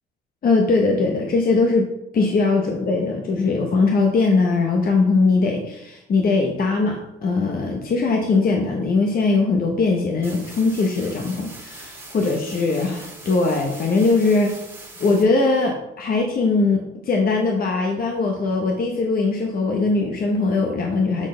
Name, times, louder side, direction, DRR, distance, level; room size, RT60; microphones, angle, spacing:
voice 1, 0.4-1.9 2.1-14.6 15.0-21.3, left 3 dB, 50° left, 2 dB, 0.9 m, -20 dB
sound 1, 10.2-15.2, right 2 dB, 15° right, 1.9 m, -41 dB
7.4 x 3.9 x 3.8 m, 0.87 s
cardioid pair, 90°, 20 cm